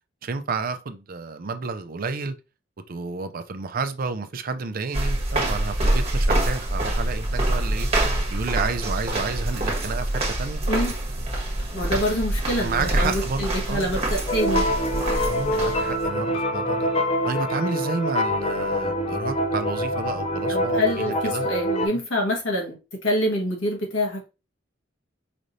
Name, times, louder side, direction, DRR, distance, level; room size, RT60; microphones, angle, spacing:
voice 1, 0.2-2.4 2.9-7.9 8.3-10.6 11.7-11.8 12.6-13.9 15.2-16.9 17.3-21.5 21.9-22.0, right 4 dB, 50° right, 0.5 m, -30 dB
sound 1, 4.9-16.1, right 1 dB, 35° right, 1.4 m, -25 dB
voice 2, 11.7-14.6 20.5-22.8 23.0-24.3, left 1 dB, 85° left, 1.6 m, -26 dB
sound 2, 14.3-21.9, left 1 dB, 35° left, 0.5 m, -25 dB
5.0 x 3.2 x 2.6 m
head